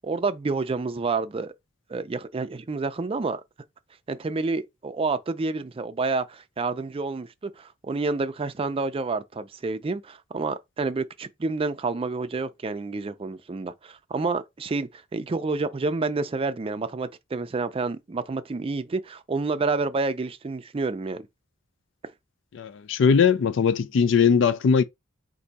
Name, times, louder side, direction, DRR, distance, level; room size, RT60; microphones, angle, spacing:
voice 1, 0.0-1.5 1.9-3.4 4.1-21.2, right 3 dB, 30° right, 0.4 m, -29 dB
voice 2, 22.5-24.8, left 6 dB, 65° left, 0.4 m, -20 dB
4.5 x 2.6 x 4.0 m
head